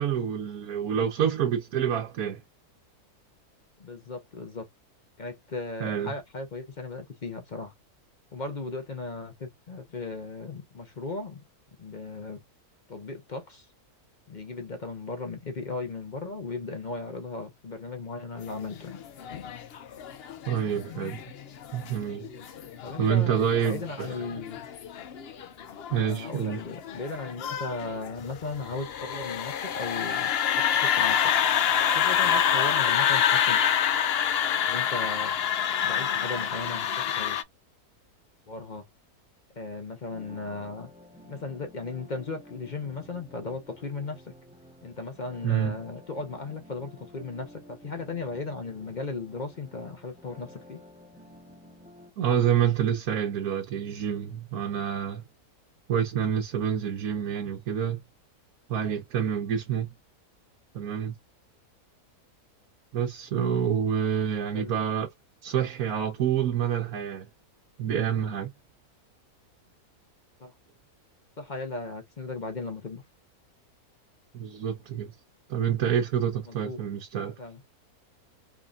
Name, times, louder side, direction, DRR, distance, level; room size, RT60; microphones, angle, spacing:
voice 1, 0.0-2.4 5.8-6.1 20.5-21.2 21.7-22.3 23.0-24.1 25.9-26.6 45.4-45.8 52.2-55.2 55.9-58.0 58.7-59.9 60.7-61.1 62.9-65.1 65.4-67.3 67.8-68.5 74.3-75.1 75.5-77.3, right 8 dB, 70° right, 1.3 m, -27 dB
voice 2, 3.8-4.7 5.2-7.7 8.3-11.4 11.8-12.4 12.9-13.7 14.3-19.0 22.8-24.6 26.0-31.3 31.9-33.6 34.7-35.4 35.8-37.4 38.5-38.8 39.6-40.9 41.2-44.3 44.8-50.8 64.5-64.7 70.4-70.5 71.4-73.0 76.5-76.8 77.4-77.6, left 3 dB, 40° left, 0.8 m, -36 dB
sound 1, 18.6-37.4, left 9 dB, 65° left, 0.6 m, -27 dB
sound 2, 40.1-52.1, left 1 dB, 5° right, 0.9 m, -51 dB
3.6 x 3.6 x 2.5 m
omnidirectional pair, 1.6 m